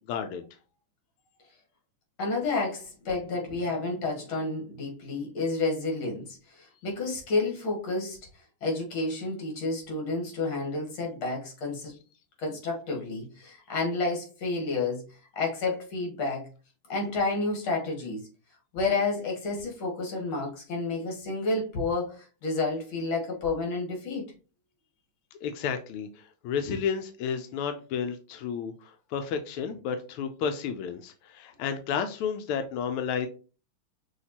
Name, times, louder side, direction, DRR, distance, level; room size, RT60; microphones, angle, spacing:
voice 1, 0.1-0.5 25.4-33.3, left 7 dB, 90° left, 7 dB, 1.5 m, -32 dB
voice 2, 2.2-8.2 8.6-11.9 12.4-15.0 15.3-16.5 16.9-18.2 18.7-24.2 26.6-26.7, left 3 dB, 70° left, 0 dB, 2.5 m, -30 dB
6.2 x 2.8 x 2.8 m, 0.34 s
omnidirectional pair, 2.4 m